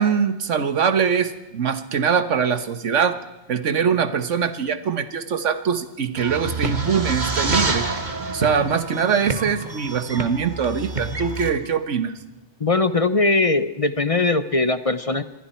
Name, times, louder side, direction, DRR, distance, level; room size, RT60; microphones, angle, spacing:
voice 1, 0.0-3.2 3.5-7.9 8.3-12.1, right 6 dB, 90° right, 11 dB, 1.5 m, -22 dB
sound 1, 6.1-11.5, right 3 dB, 40° right, 1.6 m, -27 dB
voice 2, 12.6-15.2, left 3 dB, 35° left, 12 dB, 0.8 m, -20 dB
27.0 x 22.5 x 4.5 m, 1.0 s
omnidirectional pair, 1.2 m